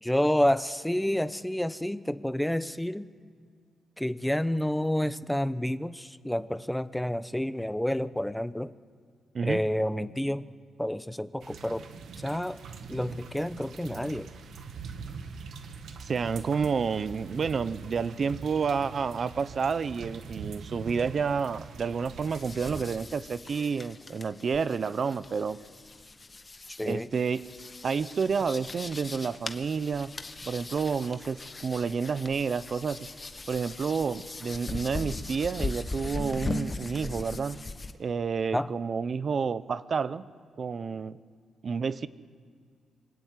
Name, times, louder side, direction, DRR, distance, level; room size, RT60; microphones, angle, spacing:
voice 1, 0.0-3.1 4.0-8.7 9.4-10.5 10.8-11.9 12.2-12.6 12.9-14.3 26.8-27.1 38.5-38.7, left 1 dB, 5° left, 14 dB, 0.8 m, -29 dB
sound 1, 11.4-23.0, right 5 dB, 70° right, 1.8 m, -43 dB
voice 2, 16.0-25.6 26.8-27.4 27.8-30.1 30.4-33.1 33.5-37.6 38.0-40.2 40.6-41.2 41.6-42.1, right 5 dB, 45° right, 15 dB, 0.9 m, -30 dB
sound 2, 22.2-37.9, left 3 dB, 25° left, 1.3 m, -39 dB
25.5 x 23.5 x 9.3 m, 2.1 s
cardioid pair, 120°, 0 cm